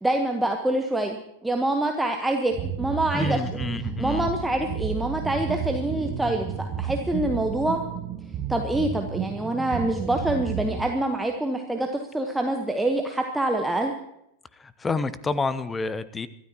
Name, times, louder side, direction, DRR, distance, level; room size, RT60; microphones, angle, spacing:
voice 1, 0.0-3.4 4.0-7.8 8.5-11.9 12.1-13.9, right 1 dB, 5° right, 3 dB, 1.2 m, -26 dB
sound 1, 2.5-10.8, right 8 dB, 30° right, 1.5 m, -32 dB
voice 2, 3.1-4.3 14.6-16.3, left 3 dB, 15° left, 16 dB, 0.7 m, -29 dB
25.0 x 13.0 x 2.9 m, 0.79 s
figure-of-eight pair, 90°, 0 cm